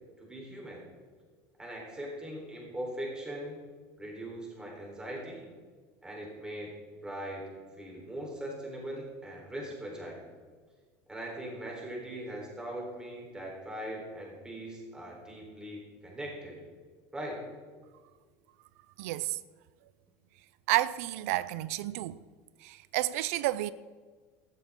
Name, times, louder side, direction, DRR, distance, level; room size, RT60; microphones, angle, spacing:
voice 1, 0.2-0.8 1.6-3.6 4.0-5.5 6.0-6.7 7.0-7.5 7.8-10.2 11.1-16.6 17.1-17.4, right 1 dB, 10° right, 3.9 m, -40 dB
voice 2, 19.0-19.4 20.7-22.2 22.6-23.7, right 16 dB, 90° right, 0.4 m, -30 dB
14.5 x 13.5 x 3.7 m
cardioid pair, 155°, 8 cm